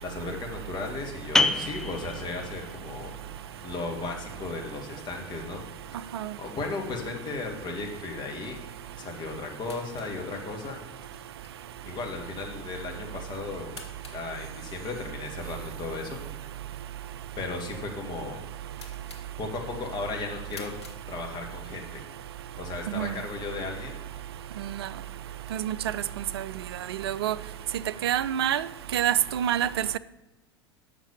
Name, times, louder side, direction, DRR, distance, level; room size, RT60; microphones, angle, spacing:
voice 1, 0.0-3.1 3.6-5.6 6.4-8.6 9.0-10.8 11.8-13.8 14.1-16.2 17.4-18.4 19.4-20.7 21.1-22.0 22.6-24.0, left 3 dB, 30° left, 1.9 m, -35 dB
sound 1, 1.3-6.7, left 2 dB, 5° left, 0.4 m, -32 dB
sound 2, 6.1-21.8, left 3 dB, 85° left, 1.3 m, -54 dB
voice 2, 27.0-27.4 28.0-28.7 28.9-30.0, right 10 dB, 65° right, 0.4 m, -26 dB
6.4 x 5.9 x 7.1 m
figure-of-eight pair, 80°, 14 cm